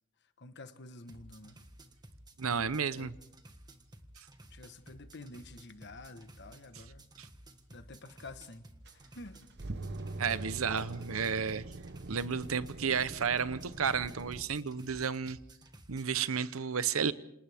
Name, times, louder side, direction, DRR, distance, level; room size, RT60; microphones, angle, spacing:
voice 1, 0.4-1.6 2.9-3.1 4.5-7.0 7.7-8.6 9.1-9.4, left 2 dB, 55° left, 10 dB, 1.3 m, -49 dB
sound 1, 1.0-16.1, right 1 dB, 20° right, 1.6 m, -55 dB
voice 2, 2.4-3.1 7.2-7.3 10.2-11.6 12.1-15.4 15.9-17.1, right 6 dB, 80° right, 15 dB, 0.8 m, -32 dB
sound 2, 8.9-14.4, right 2 dB, 55° right, 0.9 m, -43 dB
28.5 x 27.0 x 3.6 m, 0.78 s
head